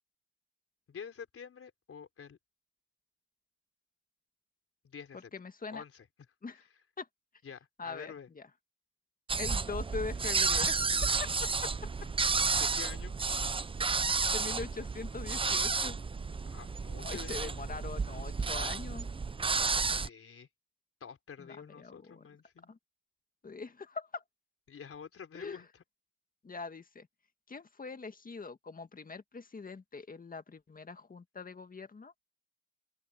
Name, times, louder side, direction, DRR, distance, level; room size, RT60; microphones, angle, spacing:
voice 1, 0.9-2.4 4.8-5.3 5.7-6.1 6.5-6.6 7.4-8.3 12.5-13.1 16.5-17.6 19.8-20.5 21.0-22.7 24.7-25.8, left 7 dB, 50° left, 4.4 m, -48 dB
voice 2, 5.3-5.8 6.4-6.6 7.0-7.1 7.8-8.5 9.4-11.7 13.8-13.9 14.3-16.0 17.0-19.1 21.4-22.2 22.7-22.8 23.4-24.2 25.3-25.6 26.4-27.1 27.5-32.1, left 4 dB, 30° left, 1.9 m, -42 dB
sound 1, 9.3-20.1, right 4 dB, 20° right, 0.6 m, -31 dB
open air
cardioid pair, 90°, 30 cm